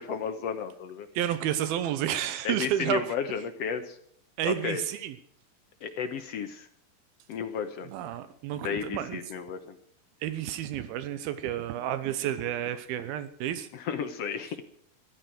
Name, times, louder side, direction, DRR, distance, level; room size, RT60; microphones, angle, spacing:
voice 1, 0.0-1.1 2.4-4.0 4.4-4.8 5.8-6.7 7.3-7.9 8.6-9.7 13.7-14.6, left 7 dB, 75° left, 7 dB, 1.4 m, -33 dB
voice 2, 1.1-3.1 4.4-5.1 7.9-9.2 10.2-13.7, right 11 dB, 85° right, 12 dB, 2.8 m, -31 dB
15.0 x 12.0 x 6.2 m, 0.63 s
omnidirectional pair, 4.3 m